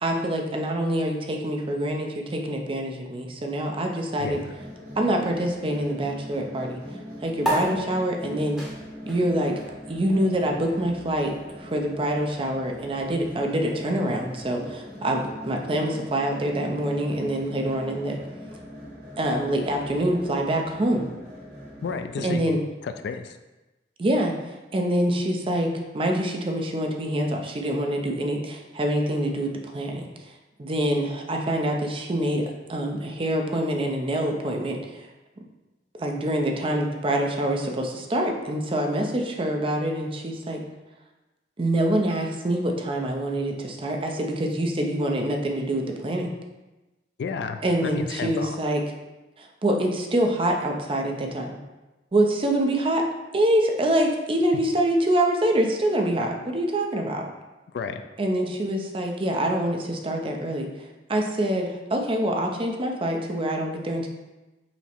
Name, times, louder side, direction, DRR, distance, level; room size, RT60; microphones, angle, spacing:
voice 1, 0.0-4.4 5.0-6.8 7.2-8.6 9.1-9.5 9.9-11.3 11.6-18.2 19.2-21.1 22.2-22.6 24.0-24.3 24.7-25.7 25.9-30.0 30.6-32.4 32.7-35.0 36.0-40.6 41.6-46.3 47.6-48.8 49.4-51.6 52.1-53.0 53.3-57.3 58.2-60.7 61.1-64.1, right 1 dB, 30° right, 2 dB, 0.5 m, -25 dB
voice 2, 4.2-4.5 21.8-23.4 47.2-48.6 54.5-54.6 57.7-58.0, left 5 dB, 70° left, 8 dB, 0.3 m, -32 dB
sound 1, 4.3-22.1, equal, 60° right, 1.3 m, -41 dB
sound 2, 7.4-14.2, right 1 dB, 5° right, 0.8 m, -35 dB
5.7 x 2.0 x 4.3 m, 1.1 s
head